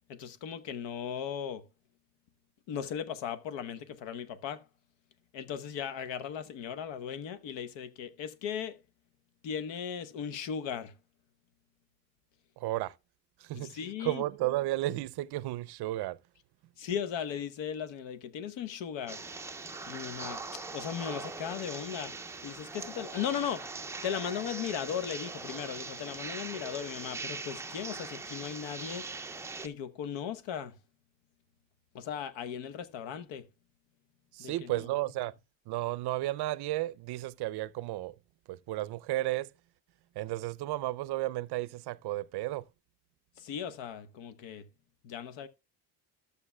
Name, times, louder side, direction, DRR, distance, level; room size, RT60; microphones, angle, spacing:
voice 1, 0.1-1.6 2.7-4.6 5.3-8.8 9.4-10.9 13.5-14.2 16.8-19.2 19.9-20.4 20.7-22.1 22.4-23.7 24.0-29.1 29.6-30.8 31.9-33.5 34.4-34.7 43.4-44.6 45.0-45.5, left 8 dB, 80° left, 0.9 m, -37 dB
voice 2, 12.6-12.9 13.4-16.2 34.3-35.3 35.7-38.2 38.5-39.5 40.2-42.6, right 16 dB, 60° right, 0.5 m, -33 dB
sound 1, 19.1-29.7, right 3 dB, 5° right, 0.3 m, -41 dB
13.5 x 6.8 x 2.2 m
cardioid pair, 130°, 44 cm